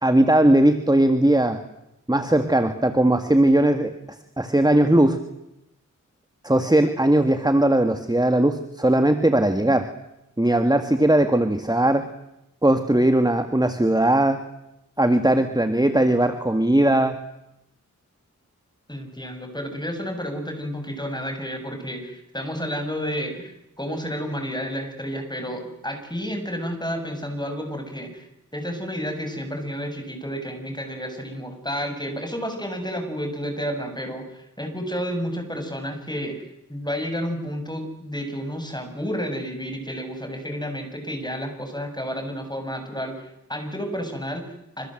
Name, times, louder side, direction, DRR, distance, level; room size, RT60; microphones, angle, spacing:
voice 1, 0.0-1.6 2.1-3.9 4.4-5.2 6.4-9.9 10.4-12.1 12.6-14.4 15.0-17.2, right 1 dB, 10° right, 8 dB, 1.9 m, -19 dB
voice 2, 18.9-28.3 28.5-36.4 36.7-44.9, equal, 15° left, 5 dB, 7.4 m, -31 dB
27.5 x 27.0 x 7.9 m, 0.87 s
wide cardioid pair, 55°, 32 cm